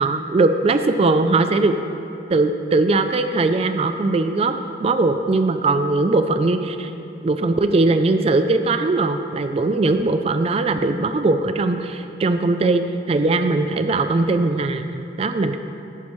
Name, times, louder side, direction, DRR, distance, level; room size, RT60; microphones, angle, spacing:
voice 1, 0.0-1.8 2.3-6.9 7.2-15.6, right 3 dB, 30° right, 8 dB, 0.3 m, -20 dB
14.0 x 9.6 x 3.1 m, 2.8 s
head